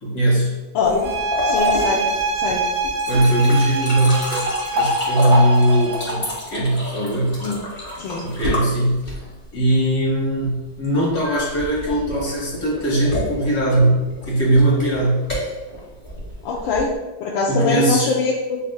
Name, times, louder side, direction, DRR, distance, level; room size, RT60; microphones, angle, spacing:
voice 1, 0.0-0.6 3.1-7.7 8.2-9.2 9.5-15.3 17.5-18.1, right 1 dB, 60° left, -5 dB, 1.7 m, -20 dB
voice 2, 0.7-1.1 1.4-2.1 2.4-2.6 8.0-8.2 16.4-16.9 17.2-18.6, left 3 dB, 80° left, -4 dB, 1.3 m, -22 dB
sound 1, 0.8-9.5 11.2-16.9, left 1 dB, 30° left, 1.3 m, -28 dB
sound 2, 1.0-6.3, right 3 dB, 85° right, 1.4 m, -25 dB
7.4 x 2.7 x 2.3 m, 1.1 s
omnidirectional pair, 2.1 m